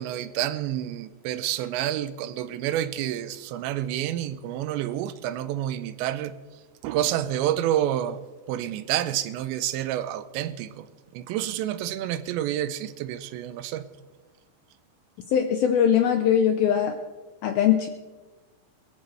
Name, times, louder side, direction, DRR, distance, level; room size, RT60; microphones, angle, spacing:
voice 1, 0.0-6.3 6.8-8.2 8.5-10.9 11.1-13.9, right 12 dB, 85° right, 2.9 m, -29 dB
voice 2, 15.3-17.0 17.4-17.9, left 9 dB, 80° left, 2.1 m, -21 dB
22.0 x 15.0 x 3.3 m
omnidirectional pair, 5.2 m